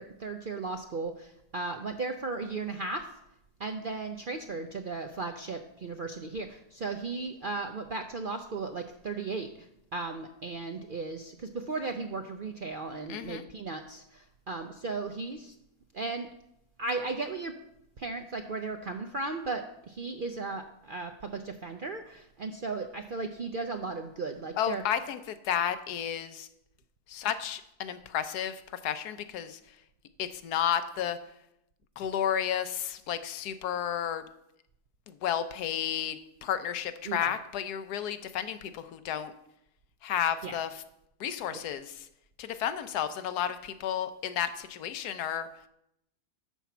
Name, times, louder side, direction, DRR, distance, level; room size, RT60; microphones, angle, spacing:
voice 1, 0.0-3.1 3.6-15.5 15.9-16.3 16.8-17.6 18.0-24.8 37.0-37.3 40.4-40.6 41.5-41.6, right 3 dB, 60° right, 5 dB, 0.5 m, -36 dB
voice 2, 13.1-13.4 24.6-26.5 27.1-29.6 30.2-31.3 32.0-34.3 35.1-39.3 40.0-40.8 41.2-42.1 42.4-45.5, left 9 dB, 85° left, 11 dB, 1.3 m, -32 dB
11.5 x 4.5 x 7.0 m, 0.80 s
omnidirectional pair, 1.6 m